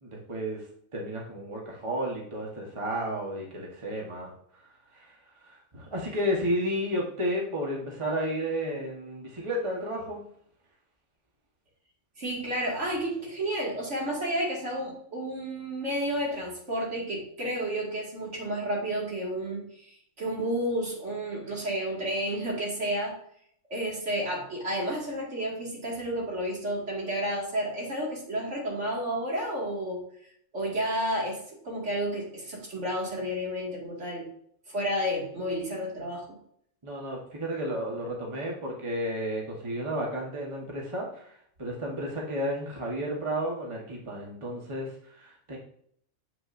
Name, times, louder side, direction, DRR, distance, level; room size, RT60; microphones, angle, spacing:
voice 1, 0.0-0.7 0.9-4.6 4.9-10.2 36.8-45.6, equal, 25° right, -2 dB, 1.2 m, -32 dB
voice 2, 12.2-23.2 23.7-30.0 30.5-34.3 34.7-36.4, equal, 65° right, -3 dB, 2.3 m, -31 dB
7.8 x 5.5 x 2.6 m, 0.64 s
omnidirectional pair, 1.3 m